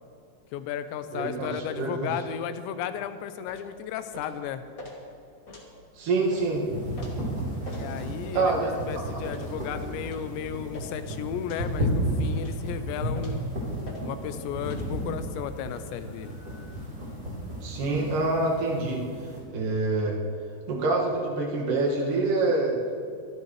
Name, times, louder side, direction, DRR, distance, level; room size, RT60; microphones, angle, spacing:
voice 1, 0.5-4.6 7.7-13.5 14.0-16.4, left 9 dB, 85° left, 11 dB, 3.0 m, -34 dB
voice 2, 1.1-2.1 6.0-6.6 8.3-8.7 9.1-9.2 17.6-19.0 19.5-20.2 20.7-22.7, right 3 dB, 55° right, -2 dB, 3.0 m, -26 dB
sound 1, 3.5-3.7 4.1-4.3 4.8-4.9 5.5-5.7 6.3-6.5 7.0-7.1 7.6-7.9 8.4-8.5 9.2-9.5 10.0-10.3 10.7-10.9 11.5-11.7 12.3-12.6 13.1-13.4 13.8-14.0 14.6-14.8, left 1 dB, 55° left, 0.9 m, -44 dB
sound 2, 6.1-19.4, equal, 25° right, 3.8 m, -33 dB
25.0 x 12.0 x 3.2 m, 2.3 s
omnidirectional pair, 5.1 m